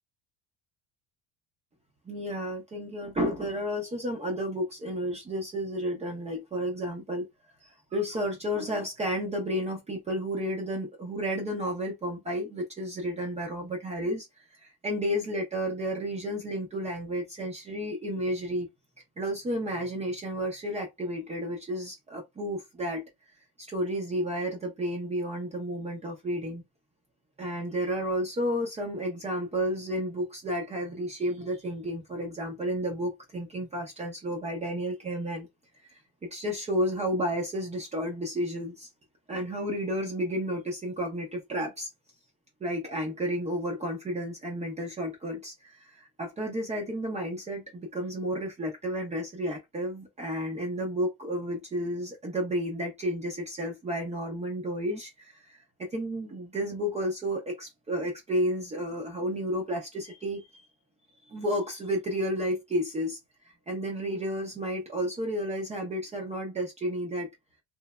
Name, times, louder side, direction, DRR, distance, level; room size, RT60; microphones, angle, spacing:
voice 1, 2.1-7.3 7.6-18.7 19.2-23.0 23.7-26.6 27.4-35.5 35.9-38.9 39.3-41.9 42.6-60.5 61.2-63.2 63.7-67.3, equal, 20° right, 0.7 m, -32 dB
3.2 x 2.1 x 2.3 m
cardioid pair, 150°, 33 cm